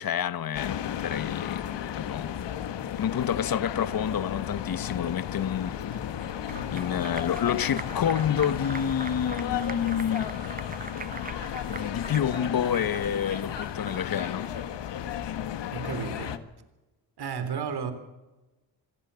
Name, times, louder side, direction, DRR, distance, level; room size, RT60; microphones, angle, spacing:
voice 1, 0.0-1.7 2.0-2.3 3.0-5.8 6.7-10.3 11.6-14.5, left 9 dB, 50° left, 1.3 m, -28 dB
sound 1, 0.5-16.4, left 10 dB, 70° left, 1.7 m, -34 dB
Applause, 5.9-14.6, right 5 dB, 20° right, 0.7 m, -43 dB
voice 2, 15.7-16.4 17.2-17.9, right 6 dB, 55° right, 3.7 m, -33 dB
26.0 x 17.0 x 7.0 m
cardioid pair, 95°, 45 cm